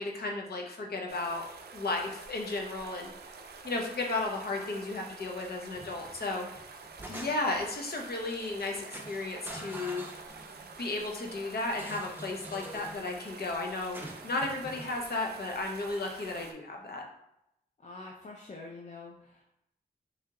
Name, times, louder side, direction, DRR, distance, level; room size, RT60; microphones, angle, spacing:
voice 1, 0.0-1.5 1.7-3.1 3.6-6.5 7.1-10.0 10.8-17.0, left 2 dB, 75° left, 1 dB, 0.8 m, -34 dB
sound 1, 1.1-16.5, right 4 dB, 85° right, 0.5 m, -48 dB
sound 2, 5.7-6.2 6.6-7.7 8.4-8.6 8.9-10.8 11.7-13.0 13.9-14.9, right 1 dB, 10° right, 0.4 m, -45 dB
voice 2, 17.8-19.5, left 3 dB, 45° left, -2 dB, 0.5 m, -46 dB
3.3 x 2.8 x 3.7 m, 0.80 s
wide cardioid pair, 135°, 16 cm